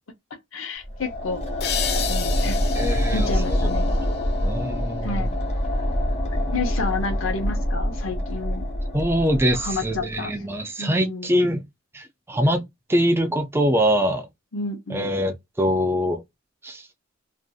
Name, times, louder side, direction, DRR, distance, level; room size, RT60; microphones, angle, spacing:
voice 1, 0.5-1.4 2.1-2.6 2.9-4.0 5.0-5.4 6.5-8.7 9.5-10.3 10.8-11.3 14.5-15.1, left 3 dB, 85° left, 0.7 m, -30 dB
sound 1, 0.8-10.1, left 1 dB, 35° left, 0.9 m, -25 dB
sound 2, 1.6-5.0, left 9 dB, 55° left, 0.4 m, -33 dB
voice 2, 2.7-3.6 4.4-5.3 8.9-11.6 11.9-12.6 12.9-14.3 14.9-16.2 16.6-16.9, equal, 10° right, 0.4 m, -23 dB
2.6 x 2.5 x 2.3 m
head